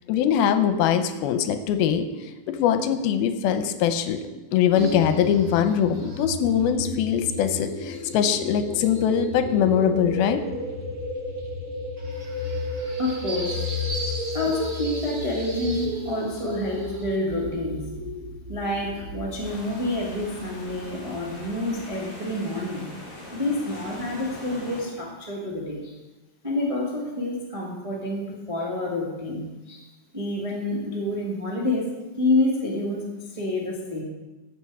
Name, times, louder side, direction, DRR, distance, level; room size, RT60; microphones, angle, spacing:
voice 1, 0.1-2.1 2.5-4.2 4.5-10.4, left 8 dB, 85° left, 9 dB, 2.6 m, -22 dB
sound 1, 4.7-21.9, left 1 dB, 85° right, 0.6 m, -33 dB
voice 2, 13.0-13.6 14.3-17.8 18.5-22.8 23.3-26.0 26.4-29.8 30.1-31.9 32.2-33.0 33.3-34.0, left 2 dB, 25° right, -4 dB, 0.7 m, -28 dB
sound 2, 19.4-24.8, left 1 dB, 45° left, 4.8 m, -42 dB
13.5 x 8.1 x 4.8 m, 1.1 s
omnidirectional pair, 4.4 m